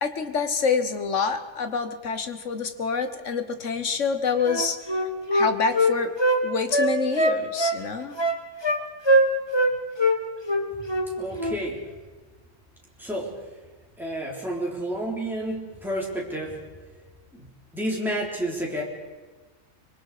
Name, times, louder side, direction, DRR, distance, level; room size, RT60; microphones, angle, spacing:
voice 1, 0.0-4.8 5.3-6.1 6.4-8.2, left 5 dB, 65° left, 9 dB, 1.5 m, -26 dB
Wind instrument woodwind instrument, 4.4-6.4 6.7-7.8 8.2-8.8 9.0-9.7 10.0-10.2 10.5-11.1 11.4-11.6, equal, 20° left, 1.5 m, -22 dB
voice 2, 11.2-11.9 13.0-13.5 14.0-16.6 17.3-18.8, right 1 dB, ahead, -3 dB, 3.6 m, -30 dB
24.5 x 23.0 x 4.9 m, 1.3 s
omnidirectional pair, 1.4 m